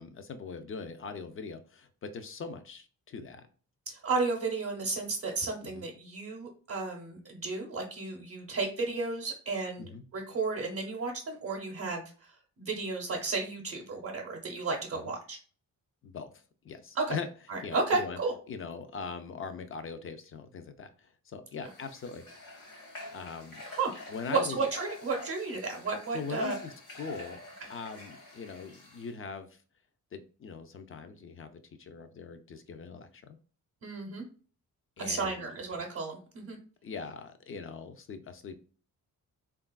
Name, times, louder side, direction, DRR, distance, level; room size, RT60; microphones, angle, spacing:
voice 1, 0.0-3.5 5.6-5.8 9.8-10.0 16.0-16.3 16.6-17.3 17.6-18.2 18.5-22.2 23.1-23.6 24.1-24.7 26.1-27.4 27.7-29.5 30.1-33.4 35.0-35.5 36.8-38.6, left 5 dB, 40° left, 8 dB, 0.4 m, -41 dB
voice 2, 3.9-12.3 12.6-15.4 16.9-17.2 17.5-18.3 23.7-23.9 24.3-26.5 33.8-34.2 35.0-36.6, right 3 dB, 45° right, 1 dB, 0.7 m, -33 dB
Water / Water tap faucet, 21.6-29.1, left 2 dB, 70° left, 1.0 m, -47 dB
3.2 x 2.4 x 2.2 m, 0.40 s
cardioid pair, 90°, 36 cm